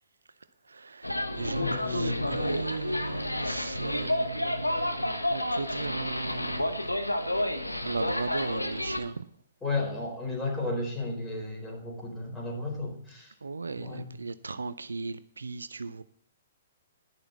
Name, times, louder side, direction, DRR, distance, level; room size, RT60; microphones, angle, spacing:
voice 1, 0.7-6.8 7.7-9.2 13.4-16.0, right 4 dB, 70° right, 0.6 m, -37 dB
sound 1, 1.0-9.0, left 1 dB, 90° left, 1.3 m, -30 dB
voice 2, 1.6-2.3 9.6-13.3 13.8-14.1, left 2 dB, 10° left, 4.5 m, -33 dB
11.5 x 11.0 x 4.1 m
figure-of-eight pair, 120°, 0 cm